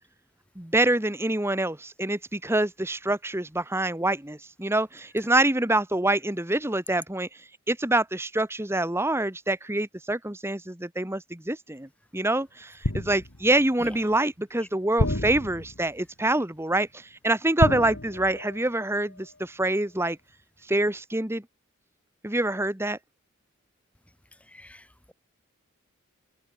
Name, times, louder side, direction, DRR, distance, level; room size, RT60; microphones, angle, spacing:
voice 1, 0.6-7.3 7.7-20.2 20.7-21.4 22.2-23.0, right 1 dB, 10° right, 1.5 m, -26 dB
sound 1, 12.8-13.6 15.0-16.0 17.6-18.7 19.0-19.2, left 1 dB, 65° left, 3.0 m, -29 dB
voice 2, 24.5-25.1, equal, 5° left, 5.1 m, -44 dB
head